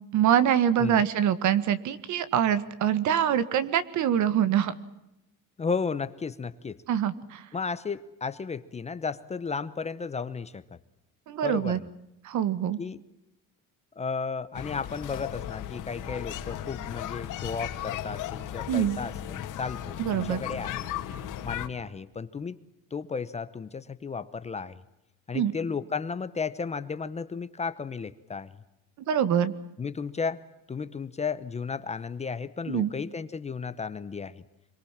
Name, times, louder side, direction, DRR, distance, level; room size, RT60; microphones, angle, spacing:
voice 1, 0.1-4.8 6.9-7.4 11.3-11.8 12.2-12.8 18.7-19.0 20.0-20.4 25.3-25.5 29.1-29.5 32.7-32.9, right 9 dB, 60° right, 14 dB, 1.8 m, -24 dB
voice 2, 5.6-6.8 7.5-10.6 11.4-11.9 12.8-13.0 14.0-20.9 21.4-22.6 22.9-24.8 25.3-28.6 29.8-30.4 30.7-34.4, left 5 dB, 20° left, 13 dB, 0.8 m, -34 dB
sound 1, 14.5-21.7, left 11 dB, 60° left, 2.2 m, -36 dB
26.0 x 23.5 x 7.4 m, 0.87 s
cardioid pair, 160°, 34 cm